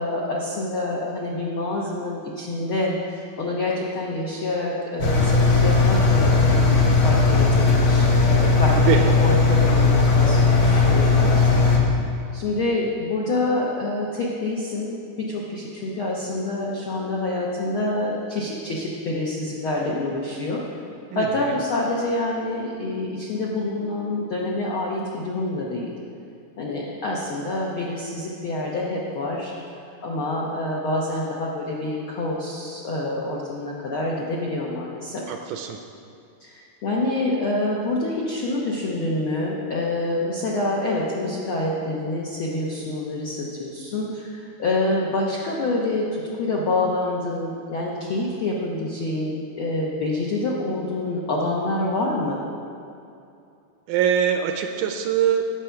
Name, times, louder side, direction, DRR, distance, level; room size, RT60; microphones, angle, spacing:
voice 1, 0.0-6.8 7.0-11.4 12.3-20.6 21.1-25.9 26.6-29.5 30.0-35.2 36.4-52.4, left 2 dB, 75° left, -4 dB, 1.2 m, -27 dB
Engine, 5.0-11.8, left 3 dB, 55° left, 1.8 m, -17 dB
voice 2, 21.1-21.6 35.3-35.8 53.9-55.4, right 9 dB, 80° right, 5 dB, 1.9 m, -23 dB
9.7 x 7.8 x 5.7 m, 2.6 s
omnidirectional pair, 3.9 m